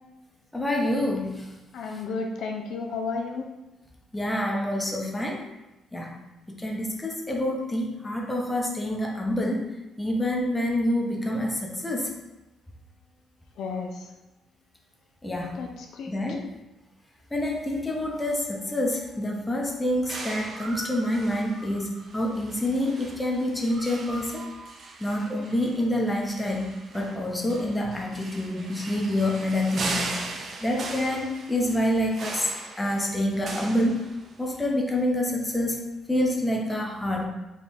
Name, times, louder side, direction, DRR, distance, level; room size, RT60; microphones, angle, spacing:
voice 1, 0.5-1.5 1.9-2.0 4.1-5.4 5.9-6.1 6.5-9.6 10.0-12.1 15.2-15.6 16.1-16.4 17.3-24.4 25.0-32.5 32.8-34.0 34.4-35.8 36.1-37.3, left 1 dB, 15° left, 0 dB, 0.8 m, -27 dB
voice 2, 1.7-3.4 13.6-13.9 15.5-15.7 16.0-16.1, left 4 dB, 75° left, 2 dB, 0.4 m, -32 dB
sound 1, 20.1-34.6, right 3 dB, 55° right, 0.6 m, -38 dB
3.6 x 2.3 x 4.2 m, 1.0 s
cardioid pair, 90°, 0 cm